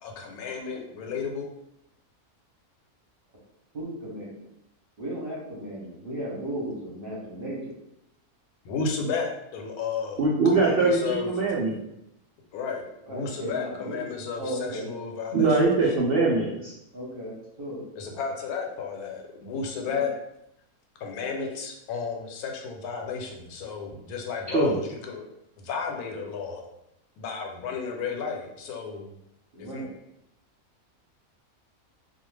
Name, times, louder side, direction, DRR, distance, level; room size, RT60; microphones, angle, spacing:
voice 1, 0.0-1.5 8.6-10.2 10.5-11.3 12.5-15.6 18.0-20.1 21.0-25.3 25.6-26.7 27.2-29.1 29.6-29.9, left 5 dB, 85° left, 2 dB, 1.1 m, -33 dB
voice 2, 3.7-4.4 5.0-7.7 13.1-14.9 16.9-17.8 19.9-20.0 29.5-29.9, right 1 dB, 45° right, -5 dB, 0.8 m, -35 dB
voice 3, 10.2-11.8 15.3-16.7 24.5-24.8, right 3 dB, 75° right, -4 dB, 0.5 m, -22 dB
2.4 x 2.2 x 3.1 m, 0.81 s
omnidirectional pair, 1.5 m